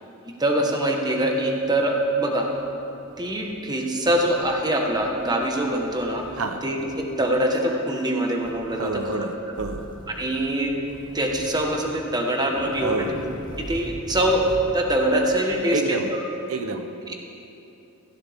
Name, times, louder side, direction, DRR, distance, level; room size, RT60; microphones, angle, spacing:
voice 1, 0.4-2.5 3.2-6.3 6.6-9.3 10.1-10.8 11.1-13.2 13.6-14.5 14.7-16.2 17.1-17.2, right 1 dB, 20° right, 1 dB, 1.3 m, -24 dB
sound 1, 1.5-2.7 3.1-3.5 4.0-4.5 4.9-6.5 6.8-7.3 8.4-9.2 9.5-10.4 10.8-12.0 12.4-14.7, equal, 20° left, 1.6 m, -42 dB
voice 2, 8.8-9.9 12.8-13.2 15.7-16.2 16.5-16.9, right 2 dB, 70° right, 6 dB, 0.8 m, -28 dB
16.5 x 16.0 x 3.6 m, 2.9 s
head